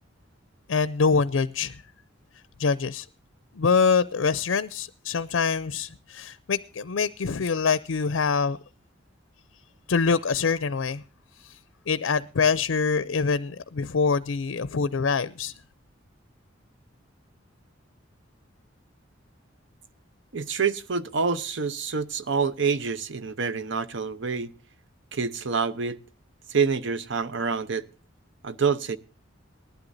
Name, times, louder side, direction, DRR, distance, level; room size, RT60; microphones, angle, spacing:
voice 1, 0.7-1.8 2.6-3.1 3.5-8.6 9.9-11.0 11.4-11.6 11.9-15.5, left 5 dB, 80° left, 0.5 m, -25 dB
voice 2, 20.3-24.5 25.1-26.0 26.5-27.8 28.4-29.0, right 5 dB, 65° right, 0.8 m, -27 dB
19.5 x 12.0 x 2.6 m
head